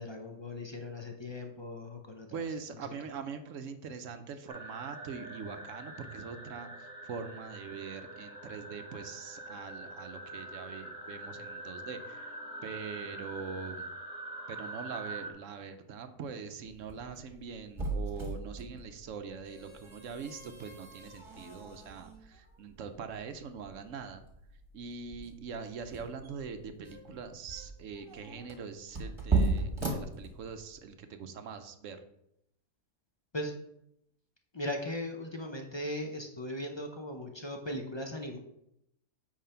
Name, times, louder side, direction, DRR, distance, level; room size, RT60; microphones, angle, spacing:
voice 1, 0.0-2.3 2.7-2.9 33.3-33.5 34.5-38.4, left 1 dB, 35° left, 3 dB, 0.4 m, -38 dB
voice 2, 2.3-12.3 12.6-13.9 14.5-24.2 24.7-32.0, right 6 dB, 60° right, 8 dB, 0.9 m, -43 dB
sound 1, 4.5-15.3, right 1 dB, 5° right, 1.6 m, -44 dB
sound 2, 16.6-30.8, right 3 dB, 20° right, 1.4 m, -37 dB
8.7 x 3.4 x 5.6 m, 0.78 s
omnidirectional pair, 1.7 m